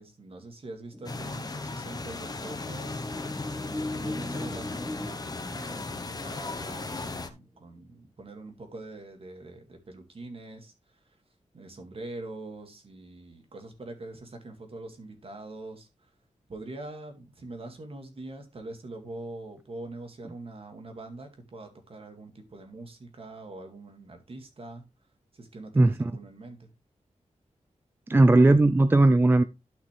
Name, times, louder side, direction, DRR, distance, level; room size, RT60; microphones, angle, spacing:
voice 1, 0.0-3.0 3.6-11.2 11.5-16.1 16.5-24.9 25.3-26.7, right 2 dB, 50° right, 2.1 m, -43 dB
sound 1, 0.9-7.8, left 1 dB, 5° left, 1.3 m, -40 dB
sound 2, 1.1-7.3, left 3 dB, 30° left, 0.9 m, -36 dB
voice 2, 28.1-29.4, right 2 dB, 15° right, 0.4 m, -18 dB
12.0 x 5.8 x 3.3 m
wide cardioid pair, 155°, 13 cm